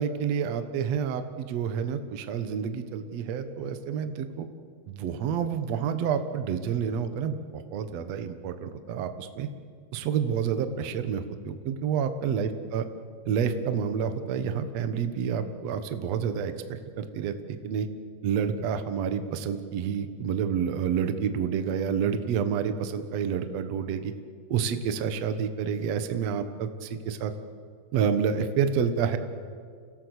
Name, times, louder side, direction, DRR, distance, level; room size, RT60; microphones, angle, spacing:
voice 1, 0.0-4.5 4.9-9.5 9.9-12.9 13.3-16.5 17.0-17.9 18.2-24.1 24.5-27.3 27.9-29.2, right 7 dB, 60° right, 9 dB, 1.8 m, -29 dB
27.5 x 17.0 x 8.1 m, 2.1 s
omnidirectional pair, 4.6 m